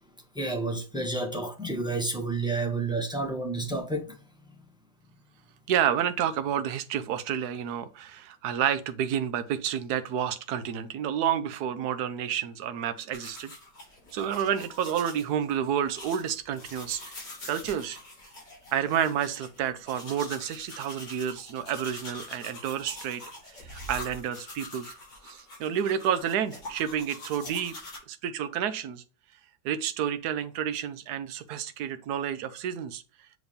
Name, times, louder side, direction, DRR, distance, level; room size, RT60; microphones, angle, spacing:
voice 1, 0.3-4.2, right 2 dB, 5° right, 0.8 m, -30 dB
voice 2, 5.7-13.5 14.1-18.0 18.7-23.2 23.6-24.9 25.2-27.8 28.1-29.0 29.6-33.0, right 9 dB, 65° right, 1.2 m, -30 dB
sound 1, 13.1-28.0, left 2 dB, 65° left, 3.8 m, -45 dB
8.0 x 3.0 x 5.3 m
omnidirectional pair, 2.0 m